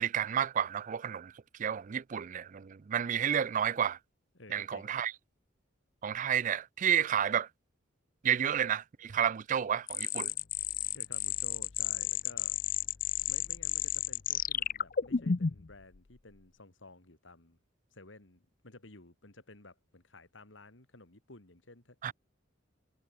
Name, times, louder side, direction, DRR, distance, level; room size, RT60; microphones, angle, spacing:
voice 1, 0.0-1.3 1.6-4.0 4.5-5.1 6.0-7.5 8.2-10.3 22.0-22.1, right 9 dB, 40° right, 0.4 m, -31 dB
voice 2, 4.3-4.9 10.9-12.6 13.3-17.6 17.9-22.1, left 2 dB, 75° left, 3.0 m, -54 dB
sound 1, 9.9-15.7, left 9 dB, 45° left, 0.6 m, -32 dB
head